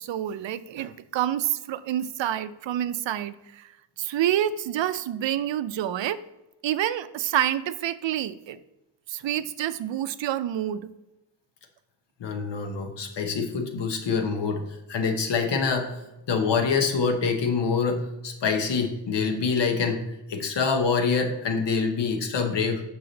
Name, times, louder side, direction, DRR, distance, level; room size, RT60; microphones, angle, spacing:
voice 1, 0.0-3.7 4.0-6.2 6.6-8.6 9.1-10.9, right 11 dB, 85° right, 14 dB, 0.5 m, -28 dB
voice 2, 12.2-14.6 14.9-16.0 16.3-20.0 20.3-22.8, left 5 dB, 70° left, 4 dB, 1.0 m, -25 dB
6.8 x 4.8 x 3.9 m, 0.97 s
wide cardioid pair, 160°, 43 cm